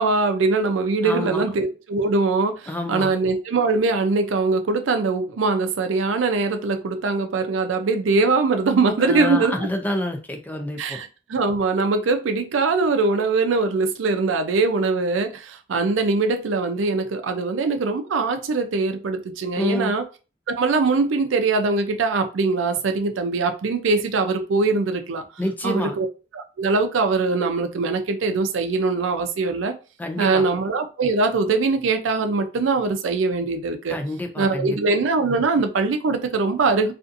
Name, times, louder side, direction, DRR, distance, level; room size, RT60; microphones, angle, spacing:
voice 1, 0.0-9.7 10.8-20.0 20.5-25.2 25.6-26.1 26.3-29.7 30.2-34.0 34.4-36.9, right 3 dB, 80° right, 0.4 m, -22 dB
voice 2, 1.0-1.4 2.7-3.1 9.0-11.0 19.5-19.9 25.4-25.9 30.0-30.5 33.9-34.8, left 1 dB, 10° left, 0.3 m, -27 dB
2.6 x 2.4 x 2.5 m
head